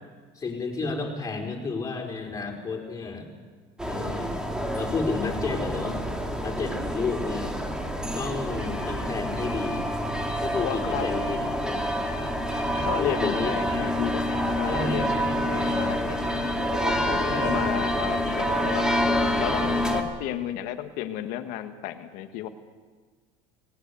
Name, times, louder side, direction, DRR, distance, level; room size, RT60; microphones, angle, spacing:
voice 1, 0.3-3.3 3.9-4.4 4.7-6.2 6.4-7.5 8.1-9.9 10.4-11.4 11.7-11.9 13.0-13.9 14.6-15.4 15.7-15.9 17.2-17.6, left 4 dB, 25° left, 0 dB, 4.4 m, -32 dB
sound 1, 3.8-20.0, equal, 5° right, 2.3 m, -27 dB
voice 2, 10.6-11.1 12.7-16.2 16.7-18.9 19.4-22.5, left 12 dB, 70° left, 7 dB, 1.3 m, -33 dB
19.0 x 18.5 x 8.2 m, 1.5 s
supercardioid pair, 120°, 15 cm